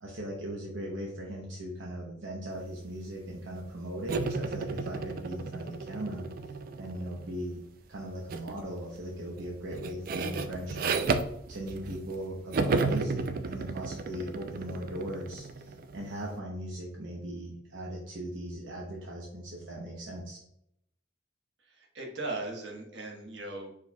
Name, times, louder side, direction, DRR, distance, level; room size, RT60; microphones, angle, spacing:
voice 1, 0.0-6.3 6.8-7.6 7.9-11.0 11.5-20.4, right 1 dB, 85° right, -2 dB, 0.8 m, -38 dB
sound 1, 4.1-7.4 8.3-8.6 9.0-12.2 12.5-16.1, right 4 dB, 50° right, 0.4 m, -33 dB
voice 2, 21.9-23.8, right 2 dB, 70° right, 0 dB, 1.2 m, -38 dB
4.9 x 4.1 x 2.3 m, 0.76 s
head